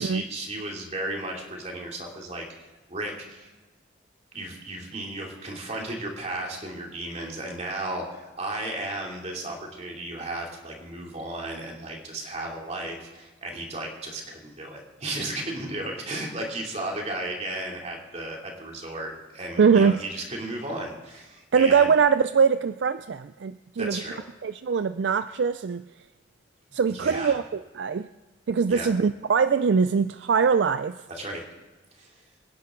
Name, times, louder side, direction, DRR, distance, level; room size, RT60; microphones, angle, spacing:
voice 1, 0.0-2.4 2.9-3.5 4.3-21.9 23.8-24.2 26.9-27.4 28.7-28.9 31.1-31.4 32.0-32.2, right 1 dB, 35° right, -1 dB, 2.9 m, -34 dB
voice 2, 19.6-20.0 21.5-24.0 24.4-25.8 26.7-28.1 28.5-31.0, right 6 dB, 60° right, 12 dB, 0.4 m, -22 dB
25.5 x 10.5 x 3.8 m, 1.2 s
head